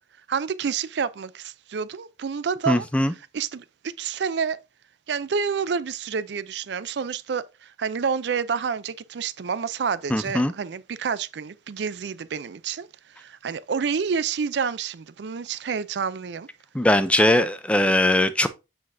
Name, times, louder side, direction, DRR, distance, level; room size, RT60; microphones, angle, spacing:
voice 1, 0.3-2.9 3.3-4.6 5.1-16.5, right 6 dB, 70° right, 0.4 m, -29 dB
voice 2, 2.7-3.1 10.1-10.5 16.7-18.5, left 1 dB, 5° left, 0.5 m, -20 dB
7.4 x 5.9 x 2.6 m
head